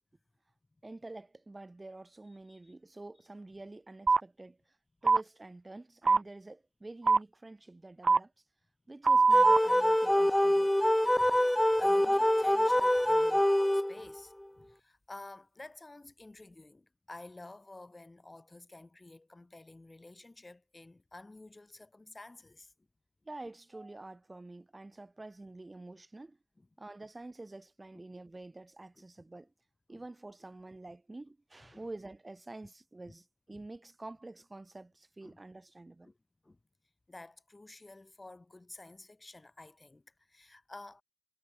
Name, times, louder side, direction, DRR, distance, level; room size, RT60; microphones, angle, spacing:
voice 1, 0.8-4.8 5.0-8.3 8.9-10.7 23.2-26.4 26.8-29.5 29.9-36.1, right 2 dB, 35° right, 7.6 m, -48 dB
sound 1, 4.1-4.2 5.1-5.2 6.1-6.2 7.1-7.2 8.0-8.2 9.0-9.6, right 4 dB, 80° right, 0.3 m, -22 dB
sound 2, 9.3-14.2, left 1 dB, 10° left, 0.4 m, -25 dB
voice 2, 11.8-13.5 13.7-22.7 29.9-30.0 31.7-31.8 33.1-33.2 33.5-33.6 35.2-35.4 36.0-36.2 36.4-36.6 37.1-41.0, left 2 dB, 35° left, 4.8 m, -51 dB
wide cardioid pair, 85°, 0 cm